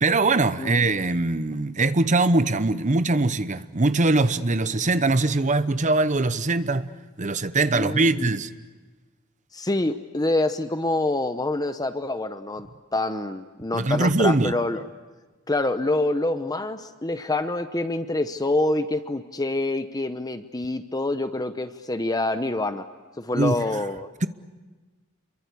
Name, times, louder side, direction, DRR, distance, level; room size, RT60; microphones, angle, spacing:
voice 1, 0.0-6.9 7.2-8.5 13.7-14.6 23.4-23.6 24.2-24.3, right 2 dB, 35° right, 0.9 m, -22 dB
voice 2, 7.7-8.3 9.5-14.8 15.5-22.9 23.2-24.1, left 2 dB, 20° left, 0.8 m, -26 dB
28.0 x 23.0 x 8.3 m
head